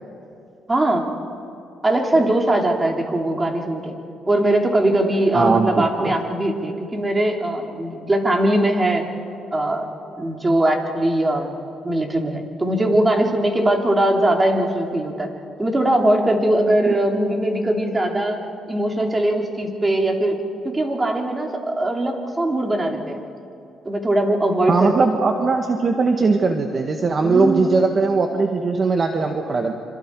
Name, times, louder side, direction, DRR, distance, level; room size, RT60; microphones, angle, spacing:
voice 1, 0.7-1.1 1.8-4.0 4.3-9.1 9.5-11.6 11.8-15.3 15.6-18.4 18.7-23.2 23.9-25.1 27.2-27.7, right 1 dB, 20° right, 2 dB, 3.4 m, -21 dB
voice 2, 5.3-6.1 16.9-17.0 24.7-29.7, right 4 dB, 40° right, 4 dB, 1.6 m, -19 dB
27.0 x 26.5 x 4.9 m, 2.6 s
cardioid pair, 90°, 0 cm